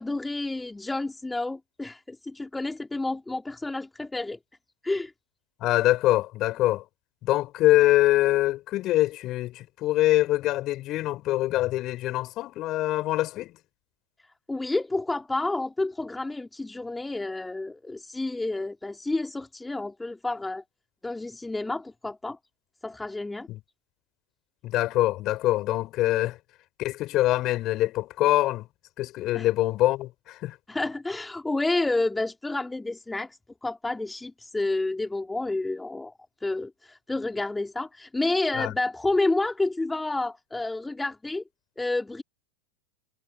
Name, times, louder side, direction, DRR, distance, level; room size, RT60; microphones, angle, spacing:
voice 1, 0.0-4.4 4.8-5.1 14.5-20.6 21.0-22.4 22.8-23.5 29.3-29.5 30.7-36.1 36.4-41.4 41.8-42.2, left 2 dB, 5° left, 2.5 m, -30 dB
voice 2, 5.6-6.8 7.2-13.5 24.6-26.4 26.8-28.6 29.0-30.6 38.6-38.7, left 16 dB, 35° left, 5.2 m, -24 dB
figure-of-eight pair, 90°, 0 cm